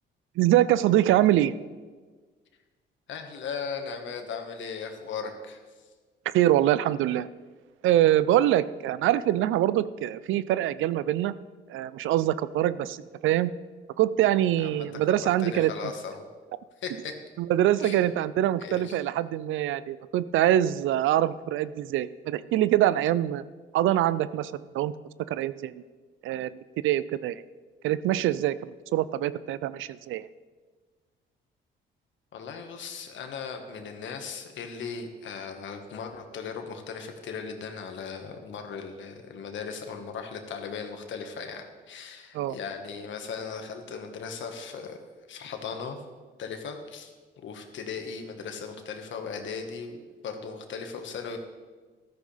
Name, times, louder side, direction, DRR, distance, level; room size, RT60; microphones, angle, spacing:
voice 1, 0.4-1.5 6.3-7.3 7.8-11.3 11.7-13.5 14.0-15.7 17.4-23.4 23.7-24.9 25.3-25.7 26.2-26.6 26.8-27.4 27.8-30.3 42.3-42.6, right 13 dB, 80° right, 16 dB, 0.5 m, -24 dB
voice 2, 3.1-5.9 14.6-16.3 16.8-17.1 17.8-18.0 18.6-19.0 32.3-45.0 45.3-46.0 46.4-47.1 47.4-51.4, left 5 dB, 70° left, 5 dB, 1.6 m, -37 dB
13.5 x 13.0 x 3.4 m, 1.4 s
cardioid pair, 90°, 20 cm